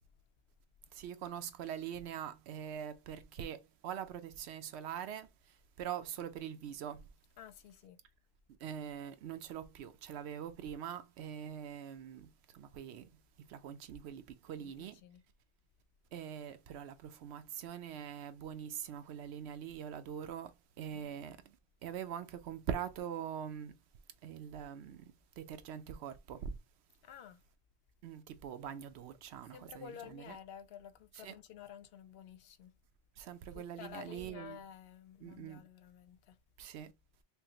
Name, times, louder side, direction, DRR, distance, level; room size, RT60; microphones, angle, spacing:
voice 1, 0.9-7.1 8.6-15.0 16.1-23.7 24.2-26.6 28.0-30.4 31.1-31.4 33.2-34.6 35.2-35.6 36.6-36.9, right 9 dB, 85° right, 0.8 m, -43 dB
voice 2, 7.4-8.0 14.6-15.2 27.0-27.4 29.5-32.7 33.5-36.4, left 9 dB, 70° left, 0.8 m, -52 dB
5.5 x 2.0 x 2.8 m
omnidirectional pair, 1.1 m